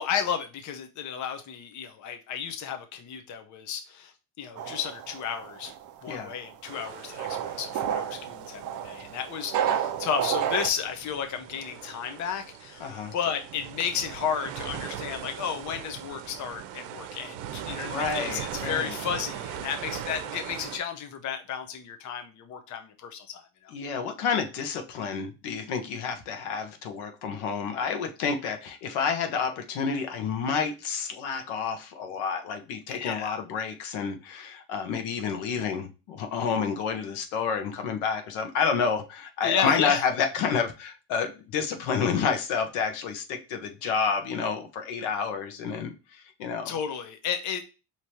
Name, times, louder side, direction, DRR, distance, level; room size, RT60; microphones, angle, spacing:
voice 1, 0.0-4.1 4.4-5.7 6.0-23.7 32.9-33.4 39.4-40.0 46.6-47.7, left 7 dB, 35° left, 0.7 m, -33 dB
sound 1, 4.6-10.7, right 9 dB, 40° right, 0.4 m, -31 dB
sound 2, 6.6-20.8, right 10 dB, 85° right, 0.7 m, -40 dB
voice 2, 12.8-13.1 17.8-19.0 23.7-46.7, left 6 dB, 85° left, 1.1 m, -29 dB
4.9 x 2.9 x 2.8 m
cardioid pair, 140°, 49 cm